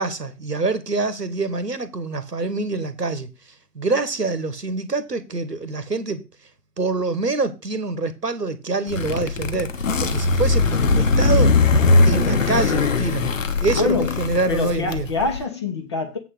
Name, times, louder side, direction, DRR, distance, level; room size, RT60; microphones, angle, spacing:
voice 1, 0.0-3.3 3.7-6.2 6.8-9.7 10.0-11.6 12.0-13.3 13.6-15.1, right 3 dB, 85° right, 1.3 m, -25 dB
sound 1, 8.9-15.4, left 3 dB, 55° left, 1.1 m, -20 dB
voice 2, 13.8-16.2, left 4 dB, 20° left, 0.8 m, -25 dB
7.9 x 4.1 x 6.5 m
figure-of-eight pair, 140°, 47 cm